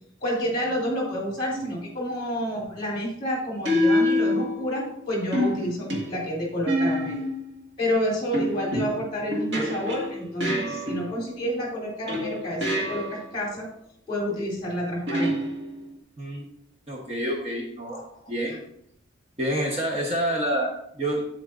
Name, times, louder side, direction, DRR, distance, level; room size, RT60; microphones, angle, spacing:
voice 1, 0.2-7.2 7.8-13.7 14.1-15.4 17.9-18.0, equal, 25° left, -3 dB, 3.3 m, -29 dB
sound 1, 1.5-1.9 3.6-4.9 5.3-7.5 8.3-11.3 12.1-13.4 15.1-16.0, left 1 dB, 65° right, 1.8 m, -27 dB
voice 2, 16.9-18.0 18.3-18.6 19.4-21.2, right 1 dB, 30° right, -1 dB, 1.1 m, -28 dB
8.8 x 8.3 x 2.5 m, 0.72 s
head